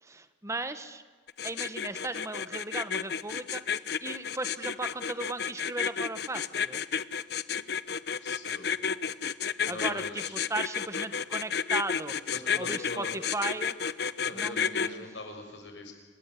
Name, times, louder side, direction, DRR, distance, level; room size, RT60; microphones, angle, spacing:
voice 1, 0.0-1.0 1.4-3.6 4.0-6.8 9.7-12.2 12.6-13.8 14.3-15.0, right 2 dB, 15° right, 11 dB, 1.3 m, -36 dB
sound 1, 1.3-14.9, left 7 dB, 60° left, 0.9 m, -31 dB
voice 2, 8.2-8.8 9.6-10.4 12.3-13.1 14.2-15.9, left 2 dB, 85° left, 4 dB, 6.8 m, -41 dB
27.0 x 21.0 x 9.8 m, 1.4 s
head